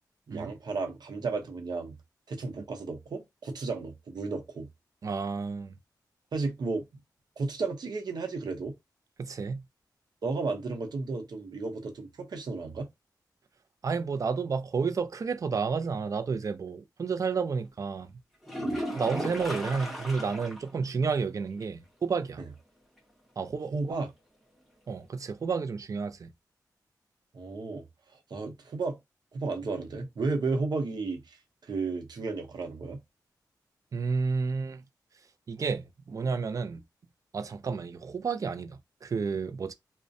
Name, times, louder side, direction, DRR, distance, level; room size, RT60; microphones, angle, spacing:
voice 1, 0.3-1.9 2.3-4.7 6.3-6.8 7.4-8.7 10.2-12.9 18.6-18.8 22.4-22.5 23.7-24.1 27.3-27.8 28.3-29.0 29.3-31.4 31.6-33.0, right 3 dB, 70° right, 0.7 m, -33 dB
voice 2, 5.0-5.7 9.2-9.6 13.8-18.1 18.9-22.4 23.4-24.0 24.9-26.3 33.9-34.8 35.5-36.8 37.3-39.7, right 5 dB, 50° right, 0.4 m, -31 dB
sound 1, 18.4-20.7 21.0-21.1 21.6-21.7 25.4-25.5, equal, ahead, 0.9 m, -35 dB
2.4 x 2.1 x 2.5 m
wide cardioid pair, 80°, 7 cm